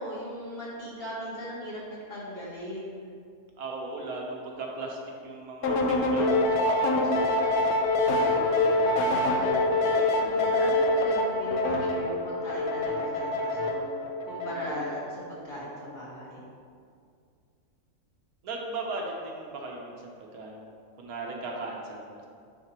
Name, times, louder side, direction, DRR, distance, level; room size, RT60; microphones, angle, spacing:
voice 1, 0.0-3.1 8.2-9.7 10.1-13.8 14.3-16.5, equal, 40° left, -6 dB, 1.6 m, -38 dB
voice 2, 3.6-7.3 18.4-22.2, right 2 dB, 70° right, -1 dB, 1.3 m, -37 dB
sound 1, 5.6-15.0, left 2 dB, 75° left, 1.1 m, -25 dB
9.7 x 4.3 x 2.9 m, 2.2 s
omnidirectional pair, 1.6 m